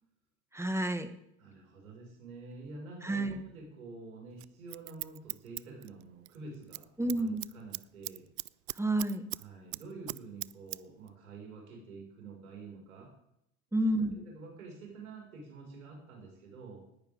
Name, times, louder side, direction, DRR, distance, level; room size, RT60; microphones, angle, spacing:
voice 1, 0.5-1.1 3.0-3.4 7.0-7.4 8.7-9.2 13.7-14.2, right 1 dB, 5° right, 8 dB, 1.8 m, -30 dB
voice 2, 1.4-8.2 9.3-13.1 13.8-16.8, right 3 dB, 85° right, -1 dB, 5.9 m, -48 dB
Scissors, 4.4-6.4 6.6-6.8 7.1-9.4 9.7-10.8 11.1-11.2, right 26 dB, 50° right, 0.5 m, -40 dB
20.0 x 14.5 x 3.8 m, 0.78 s
hypercardioid pair, 80°, 41 cm